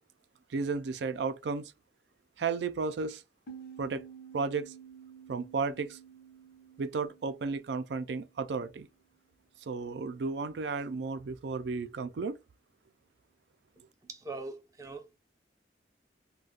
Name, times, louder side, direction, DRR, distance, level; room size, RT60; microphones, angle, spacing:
voice 1, 0.5-1.7 2.4-3.2 3.8-4.0 4.3-4.7 5.3-6.0 6.8-8.9 9.7-12.4, right 4 dB, 80° right, 0.4 m, -33 dB
sound 1, 3.5-8.8, right 7 dB, 60° left, 0.7 m, -51 dB
voice 2, 14.0-15.2, right 3 dB, 20° right, 0.5 m, -42 dB
2.4 x 2.2 x 3.9 m
head